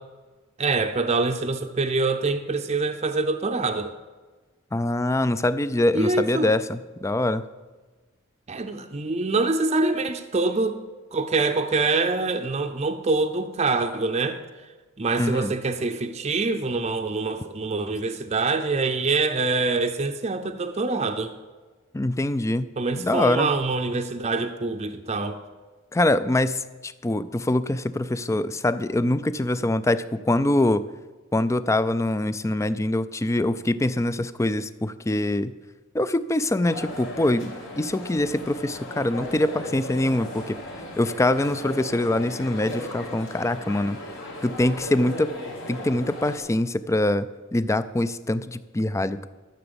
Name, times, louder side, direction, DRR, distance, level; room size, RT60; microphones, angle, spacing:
voice 1, 0.6-3.9 5.9-6.5 8.5-10.8 11.1-14.4 15.0-21.3 22.8-25.4, right 3 dB, 30° right, 5 dB, 0.6 m, -25 dB
voice 2, 4.7-7.4 15.2-15.5 21.9-22.7 23.0-23.5 25.9-30.8 31.3-35.5 35.9-40.6 41.0-44.0 44.4-45.3 45.7-49.3, left 1 dB, 15° left, 15 dB, 0.4 m, -24 dB
sound 1, 36.6-46.4, left 1 dB, 65° left, 2.8 m, -37 dB
13.5 x 7.0 x 6.9 m, 1.3 s
head